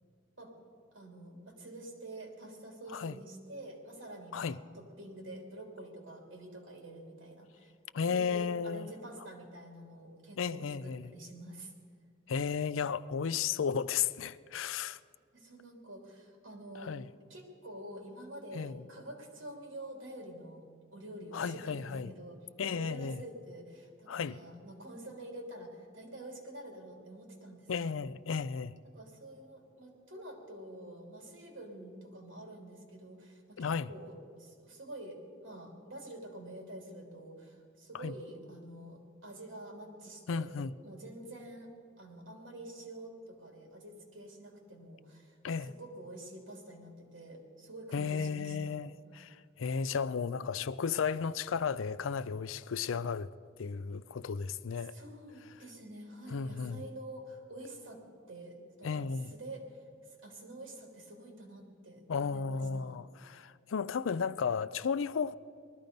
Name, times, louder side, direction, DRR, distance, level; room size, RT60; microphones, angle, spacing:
voice 1, 0.9-7.7 8.1-11.7 15.3-16.9 17.3-22.4 22.7-28.1 28.9-41.7 42.0-45.4 45.7-48.8 54.9-58.0 58.3-63.0, right 1 dB, 80° right, 2.8 m, -47 dB
voice 2, 7.9-8.9 10.4-11.1 12.3-15.0 16.8-17.1 18.5-18.8 21.3-22.1 22.6-23.2 24.1-24.4 27.7-28.7 33.6-33.9 37.9-38.1 40.3-40.7 45.4-45.7 47.9-53.3 53.6-54.9 56.3-56.8 58.8-59.3 62.1-65.4, left 6 dB, 90° left, 0.4 m, -34 dB
19.5 x 13.0 x 5.3 m
head